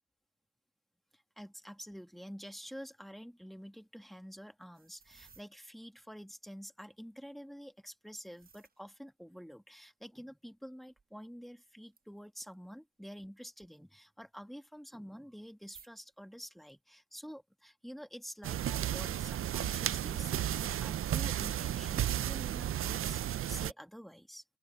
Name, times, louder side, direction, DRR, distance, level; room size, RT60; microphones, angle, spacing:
voice 1, 1.1-24.4, equal, ahead, 1.8 m, -48 dB
sound 1, 4.6-5.5 8.2-8.8 9.4-9.5 10.9-11.1 11.9-12.5 13.9-14.0 15.6-16.1, right 5 dB, 30° right, 1.1 m, -60 dB
sound 2, 18.4-23.7, right 11 dB, 45° right, 0.5 m, -33 dB
open air
cardioid pair, 85°, 29 cm